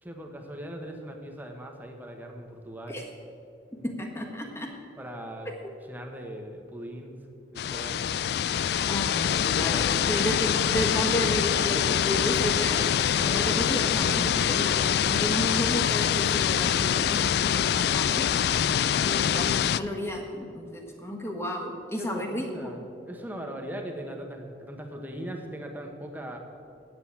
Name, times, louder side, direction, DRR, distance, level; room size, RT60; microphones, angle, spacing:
voice 1, 0.0-3.0 5.0-5.5 5.9-7.2 7.5-8.1 9.6-10.2 22.0-26.4, right 1 dB, 10° right, 3 dB, 1.1 m, -39 dB
voice 2, 3.8-4.7 5.4-5.6 8.9-14.7 15.1-18.3 19.0-22.7, equal, 15° left, 1 dB, 1.4 m, -32 dB
sound 1, 7.6-19.8, left 9 dB, 60° left, 0.3 m, -25 dB
9.1 x 8.0 x 8.4 m, 2.5 s
head